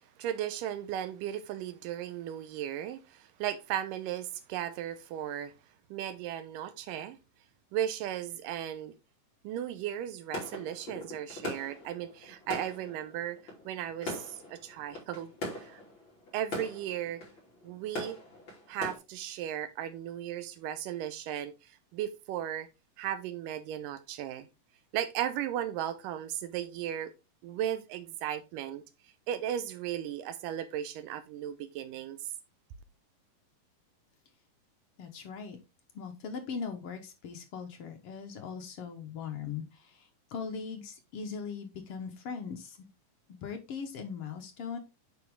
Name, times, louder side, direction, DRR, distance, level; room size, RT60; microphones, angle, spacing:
voice 1, 0.2-5.5 5.9-7.2 7.7-8.9 9.4-15.8 16.3-17.2 17.6-18.2 18.7-22.7 23.0-24.5 24.9-27.1 27.4-28.8 29.3-32.2, right 11 dB, 80° right, 2.5 m, -36 dB
sound 1, 10.3-19.0, left 1 dB, 35° left, 3.6 m, -42 dB
voice 2, 35.0-35.6 35.9-42.9 43.4-44.8, left 6 dB, 65° left, 1.5 m, -40 dB
9.4 x 4.2 x 3.5 m
omnidirectional pair, 3.9 m